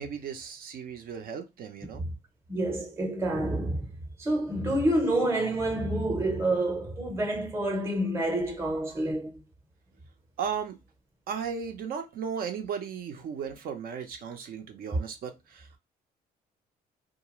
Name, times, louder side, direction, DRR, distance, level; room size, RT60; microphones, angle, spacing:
voice 1, 0.0-2.0 10.4-10.8 11.3-15.8, right 7 dB, 60° right, 0.7 m, -36 dB
voice 2, 2.5-3.9 4.2-9.3, right 1 dB, 15° right, 0.8 m, -28 dB
2.4 x 2.2 x 3.0 m
cardioid pair, 110°, 17 cm